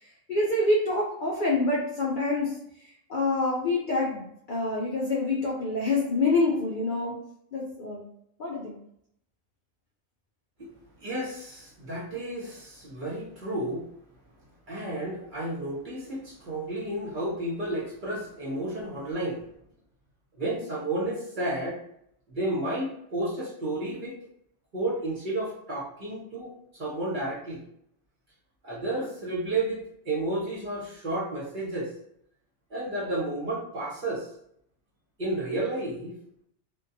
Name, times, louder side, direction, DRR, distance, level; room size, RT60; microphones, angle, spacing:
voice 1, 0.0-7.1 7.5-8.0 8.4-8.8, left 2 dB, 70° left, -3 dB, 0.4 m, -27 dB
voice 2, 11.0-13.8 14.7-19.4 20.4-21.8 22.3-24.2 24.7-27.6 28.6-31.9 32.7-34.3 35.2-36.1, right 1 dB, 45° right, -5 dB, 0.7 m, -32 dB
2.6 x 2.2 x 2.5 m, 0.71 s
omnidirectional pair, 1.4 m